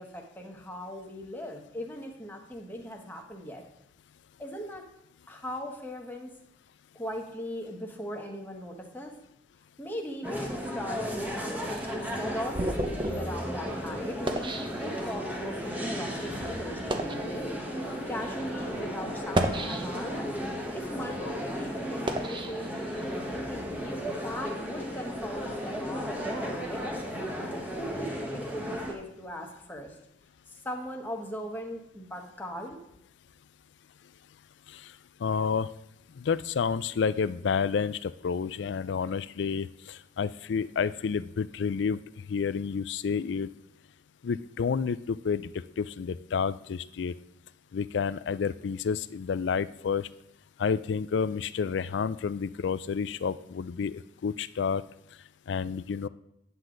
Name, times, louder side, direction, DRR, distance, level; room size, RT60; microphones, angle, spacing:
voice 1, 0.0-3.6 4.4-4.8 5.3-6.3 6.9-9.1 9.8-17.6 18.1-20.2 20.7-26.9 27.8-30.0 30.5-32.8, equal, 10° left, 1 dB, 1.3 m, -39 dB
sound 1, 10.2-28.9, equal, 10° right, 1.2 m, -35 dB
sound 2, 11.7-15.4 16.1-16.2 16.7-17.3 18.1-18.2 19.1-20.2 20.8-23.3, right 1 dB, 25° right, 0.7 m, -33 dB
voice 2, 35.2-35.7 36.2-42.0 42.3-43.5 44.2-47.1 47.7-50.1 50.6-54.8 55.5-56.1, left 6 dB, 70° left, 17 dB, 0.4 m, -30 dB
9.7 x 7.7 x 3.8 m, 0.80 s
head